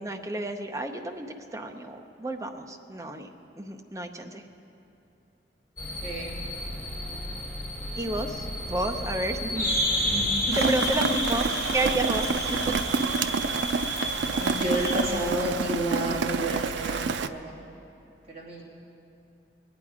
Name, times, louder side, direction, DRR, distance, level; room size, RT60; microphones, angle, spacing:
voice 1, 0.0-4.4 8.0-9.7 10.5-12.7, right 1 dB, 15° right, 3 dB, 0.7 m, -31 dB
sound 1, 5.8-15.0, equal, 20° left, 3.5 m, -31 dB
voice 2, 6.0-6.4 10.0-10.7 14.3-17.6 18.3-18.6, right 1 dB, 35° right, -6 dB, 2.5 m, -31 dB
Rain, 10.5-17.3, right 4 dB, 80° right, 0.4 m, -28 dB
21.5 x 9.6 x 4.9 m, 2.8 s
head